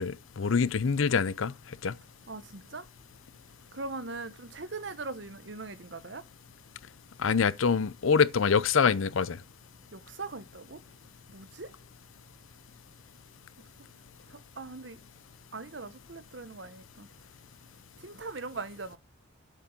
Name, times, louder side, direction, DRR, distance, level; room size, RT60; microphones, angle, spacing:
voice 1, 0.0-1.5 1.8-1.9 7.2-9.4, left 5 dB, 75° left, 0.6 m, -25 dB
voice 2, 2.3-2.9 3.7-6.2 9.9-10.8 11.3-11.7 14.3-15.0 15.5-17.1 18.0-19.0, right 3 dB, 60° right, 1.0 m, -40 dB
8.2 x 6.0 x 8.0 m
head